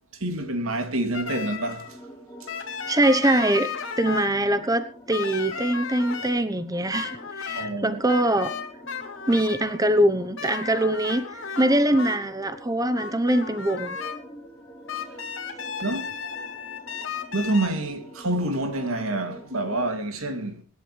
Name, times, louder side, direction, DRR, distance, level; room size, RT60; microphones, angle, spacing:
voice 1, 0.1-2.0 2.4-2.5 7.5-8.0 15.8-16.1 17.3-20.6, right 2 dB, 75° right, 2.7 m, -27 dB
sound 1, 1.1-2.0 2.5-4.3 5.1-6.3 6.9-7.7 8.1-9.8 10.4-12.3 13.0-14.2 14.9-17.7, left 6 dB, 60° left, 3.0 m, -34 dB
sound 2, 1.2-19.9, equal, 10° left, 2.8 m, -47 dB
voice 2, 2.9-3.7 4.0-8.5 9.3-14.0, right 1 dB, 15° right, 0.9 m, -23 dB
25.5 x 11.5 x 3.3 m
head